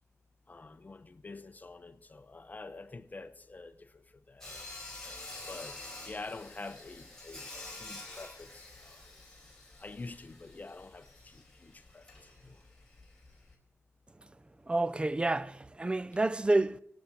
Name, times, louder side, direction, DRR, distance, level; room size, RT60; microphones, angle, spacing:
voice 1, 0.5-4.5 5.5-9.2 9.8-12.6, left 3 dB, 35° left, 0.8 m, -47 dB
Sawing, 4.4-13.5, left 2 dB, 10° left, 4.2 m, -48 dB
voice 2, 14.7-16.8, right 2 dB, 20° right, 0.5 m, -29 dB
16.5 x 8.6 x 9.0 m
wide cardioid pair, 85°, 5 cm